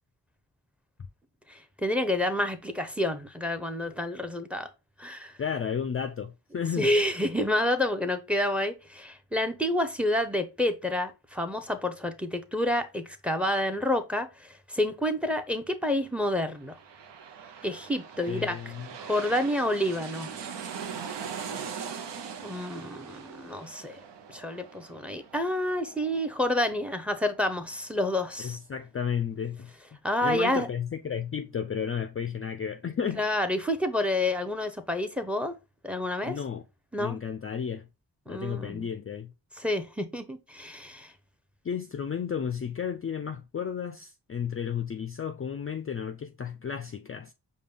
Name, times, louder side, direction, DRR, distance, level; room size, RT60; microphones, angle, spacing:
voice 1, 1.5-4.7 5.0-5.3 6.8-16.8 17.6-18.6 19.0-20.3 22.4-24.0 24.3-28.6 30.0-30.7 33.2-35.5 35.8-36.4 36.9-37.2 38.3-38.9 39.5-41.1, left 1 dB, 5° right, 0.6 m, -29 dB
voice 2, 5.4-6.9 18.3-18.9 28.4-29.8 30.2-33.2 36.2-36.6 37.0-37.9 38.3-39.3 41.6-47.3, left 7 dB, 35° left, 0.4 m, -33 dB
sound 1, 16.4-27.7 28.1-28.2, right 7 dB, 80° right, 0.6 m, -41 dB
5.1 x 2.2 x 3.4 m
cardioid pair, 45°, 41 cm